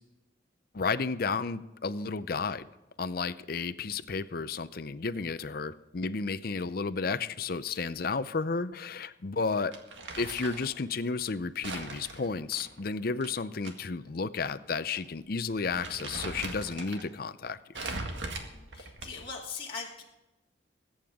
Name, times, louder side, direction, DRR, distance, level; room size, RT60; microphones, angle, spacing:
voice 1, 0.7-2.7 3.0-9.7 10.2-17.6, left 4 dB, 50° left, 13 dB, 0.6 m, -32 dB
Crumpling crinkling, 9.7-10.7 11.6-13.7 14.1-14.2 15.0-15.1 15.5-17.1 17.7-19.4, right 2 dB, 75° right, 1.9 m, -40 dB
voice 2, 18.5-20.0, left 5 dB, 30° left, -4 dB, 2.3 m, -40 dB
22.0 x 8.8 x 3.7 m, 1.0 s
head